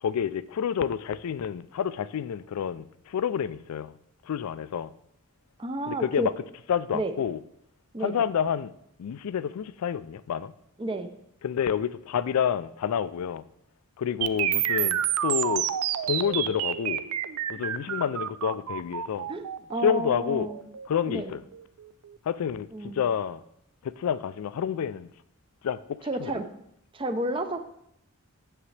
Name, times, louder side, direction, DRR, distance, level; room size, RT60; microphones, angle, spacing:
voice 1, 0.0-3.9 4.3-4.9 5.9-6.3 6.7-7.4 8.0-8.7 9.0-10.5 11.4-13.4 14.0-15.7 16.0-17.0 17.5-19.3 19.8-20.5 20.9-21.4 22.3-22.7 23.0-23.4 23.8-25.1 25.6-26.3, left 8 dB, 85° left, 0.3 m, -28 dB
voice 2, 5.6-6.3 6.9-7.1 7.9-8.2 10.8-11.1 19.3-20.6 21.0-21.3 22.7-23.1 26.0-26.5 26.9-27.6, right 1 dB, 25° right, 0.5 m, -31 dB
sound 1, 14.2-22.2, right 10 dB, 85° right, 0.4 m, -29 dB
8.6 x 6.8 x 3.2 m
head